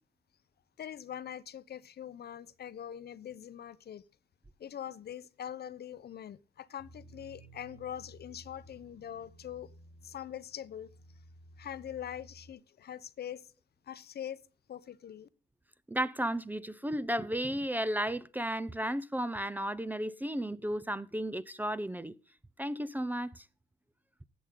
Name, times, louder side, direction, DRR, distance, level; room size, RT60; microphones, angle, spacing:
voice 1, 0.8-4.0 4.6-9.7 10.0-10.9 11.6-13.5 13.9-14.4 14.7-15.3, left 10 dB, 55° left, 0.8 m, -43 dB
sound 1, 6.8-12.5, right 1 dB, 75° right, 2.0 m, -56 dB
voice 2, 15.9-22.1 22.6-23.4, right 1 dB, 10° right, 0.6 m, -34 dB
14.0 x 8.6 x 3.8 m
cardioid pair, 90°, 20 cm